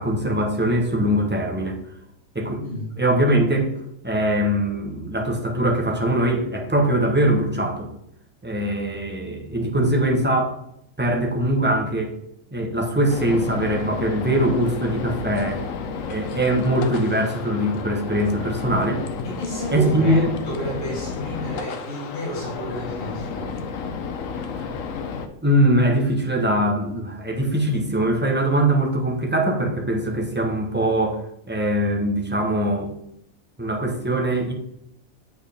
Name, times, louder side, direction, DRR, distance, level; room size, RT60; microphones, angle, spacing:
voice 1, 0.0-1.8 2.3-2.6 3.0-3.7 4.0-7.9 8.4-10.6 11.0-12.1 12.5-15.6 16.1-19.0 19.7-20.4 24.5-24.6 25.4-32.9 33.6-34.5, right 1 dB, 10° right, 0 dB, 0.9 m, -22 dB
voice 2, 2.6-3.0 19.2-23.6, equal, 45° left, -5 dB, 1.6 m, -31 dB
sound 1, 13.1-25.3, left 5 dB, 80° left, 1.1 m, -32 dB
7.7 x 4.6 x 3.5 m, 0.78 s
omnidirectional pair, 1.4 m